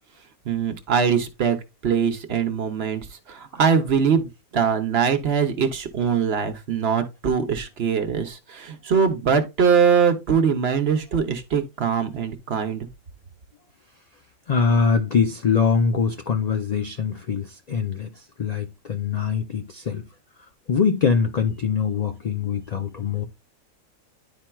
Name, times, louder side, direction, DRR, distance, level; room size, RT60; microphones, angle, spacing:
voice 1, 0.5-1.6 1.8-4.3 4.5-12.9, right 6 dB, 50° right, 1.0 m, -22 dB
voice 2, 14.5-20.1 20.7-23.3, left 6 dB, 80° left, 0.3 m, -23 dB
10.5 x 4.3 x 2.3 m
omnidirectional pair, 1.4 m